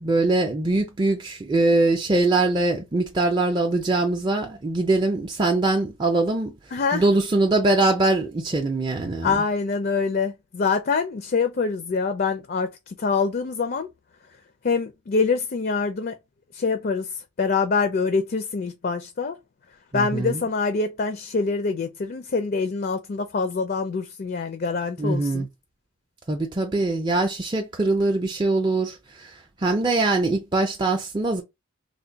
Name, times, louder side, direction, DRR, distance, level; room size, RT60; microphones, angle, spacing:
voice 1, 0.0-6.5 6.9-9.4 19.9-20.4 25.0-25.5 26.3-31.4, right 2 dB, 20° right, 0.4 m, -22 dB
voice 2, 6.7-7.0 9.2-13.9 14.6-16.1 16.5-17.1 17.4-19.4 19.9-25.5, left 4 dB, 45° left, 0.4 m, -25 dB
3.3 x 2.1 x 3.9 m
head